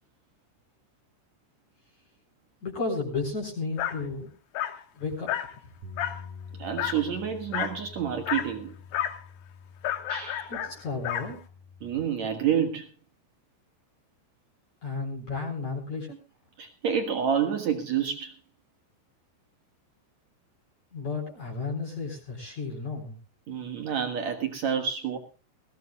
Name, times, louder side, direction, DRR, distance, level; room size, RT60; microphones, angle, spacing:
voice 1, 2.6-4.3 4.9-5.3 10.5-11.4 14.8-16.2 20.9-23.2, left 4 dB, 35° left, -2 dB, 4.7 m, -33 dB
Dog, 3.8-4.0 4.5-4.8 5.3-5.5 6.0-6.3 6.8-7.0 7.5-7.8 8.3-8.5 8.9-9.2 9.8-11.3, left 11 dB, 70° left, 2.3 m, -31 dB
Bass guitar, 5.8-12.1, left 5 dB, 45° right, 2.4 m, -46 dB
voice 2, 6.6-8.7 10.1-10.5 11.8-12.9 16.6-18.3 23.5-25.2, right 8 dB, 80° right, 5 dB, 1.6 m, -28 dB
22.0 x 17.0 x 2.3 m, 0.32 s
omnidirectional pair, 5.9 m